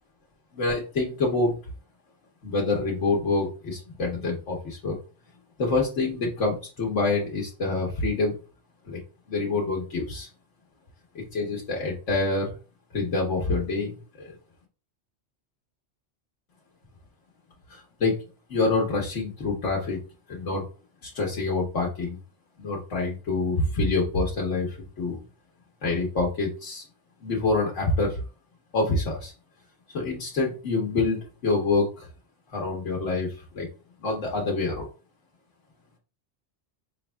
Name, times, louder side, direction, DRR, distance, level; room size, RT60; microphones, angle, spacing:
voice 1, 0.5-1.6 2.4-5.0 5.6-8.4 8.9-9.0 9.3-10.3 11.1-12.5 12.9-14.3 17.7-18.2 18.5-20.0 20.3-20.6 21.0-22.2 22.6-25.2 25.8-26.8 27.2-28.2 28.7-29.3 29.9-32.1 32.5-33.7 34.0-34.9, left 3 dB, 85° left, -2 dB, 1.3 m, -26 dB
4.3 x 3.3 x 2.2 m, 0.33 s
omnidirectional pair, 1.2 m